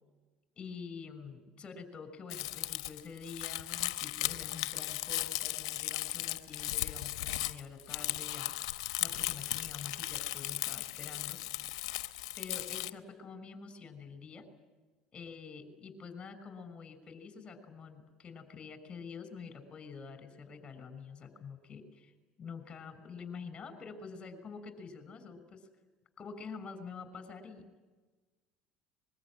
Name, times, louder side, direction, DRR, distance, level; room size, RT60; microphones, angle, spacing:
voice 1, 0.6-8.6 9.0-11.5 12.4-14.5 15.1-22.1 22.4-25.6 26.2-27.7, left 5 dB, 30° left, 11 dB, 5.9 m, -47 dB
Crumpling crinkling, 2.3-12.9, left 15 dB, 70° left, 1.1 m, -36 dB
24.0 x 22.5 x 10.0 m, 1.3 s
hypercardioid pair, 70°, 3 cm